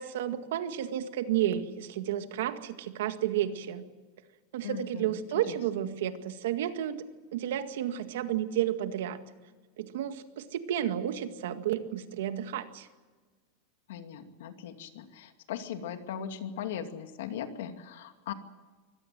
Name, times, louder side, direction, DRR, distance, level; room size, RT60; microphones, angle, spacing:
voice 1, 0.0-3.8 4.5-7.0 7.3-9.2 9.8-12.9, right 11 dB, 75° right, 8 dB, 1.9 m, -32 dB
voice 2, 4.6-5.2 5.5-5.6 13.9-18.3, left 9 dB, 70° left, 7 dB, 2.4 m, -39 dB
24.5 x 17.5 x 7.7 m, 1.4 s
supercardioid pair, 180°, 0 cm